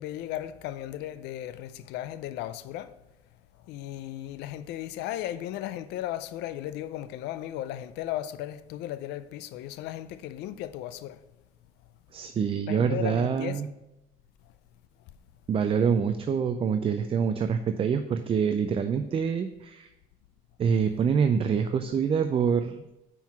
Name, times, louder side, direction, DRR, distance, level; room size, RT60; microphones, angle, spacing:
voice 1, 0.0-2.9 3.7-11.2 12.7-13.6, left 12 dB, 85° left, 0.4 m, -36 dB
voice 2, 12.1-13.7 15.5-19.9 20.6-22.8, right 6 dB, 35° right, 0.4 m, -26 dB
5.7 x 4.6 x 5.7 m
cardioid pair, 110°, 17 cm